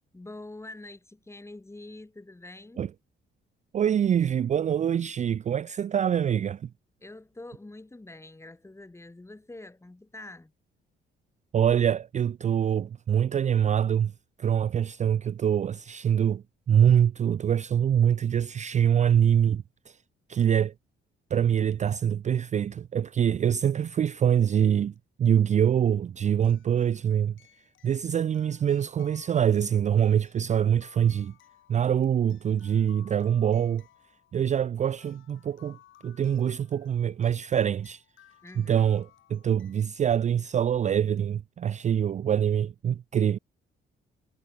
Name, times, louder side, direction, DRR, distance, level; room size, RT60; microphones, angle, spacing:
voice 1, 0.1-2.9 7.0-10.5 38.4-38.9, left 2 dB, 15° left, 3.0 m, -45 dB
voice 2, 3.7-6.7 11.5-14.1 14.4-20.0 20.3-20.7 21.3-27.3 27.8-31.3 31.7-33.8 34.3-35.8 36.0-38.0 38.6-39.0 39.3-43.4, right 9 dB, 35° right, 0.4 m, -24 dB
sound 1, 25.0-25.1 26.4-39.8, left 13 dB, 75° left, 2.9 m, -60 dB
cardioid pair, 90°, 20 cm